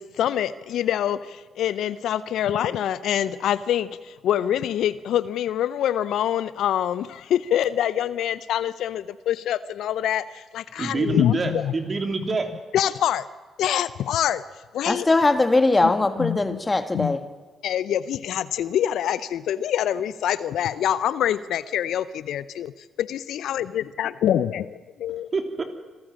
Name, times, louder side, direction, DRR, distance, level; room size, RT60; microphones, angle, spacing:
voice 1, 0.0-11.7 12.7-13.3 13.6-14.4 14.7-15.1 15.8-15.9 16.2-16.6 16.9-17.2 17.6-24.7 25.0-25.3, left 10 dB, 65° left, 0.6 m, -25 dB
voice 2, 10.7-12.5 25.3-25.6, right 3 dB, 40° right, 3.1 m, -26 dB
voice 3, 14.9-17.2, left 2 dB, 25° left, 1.8 m, -20 dB
26.0 x 13.5 x 7.4 m
hypercardioid pair, 45°, 0 cm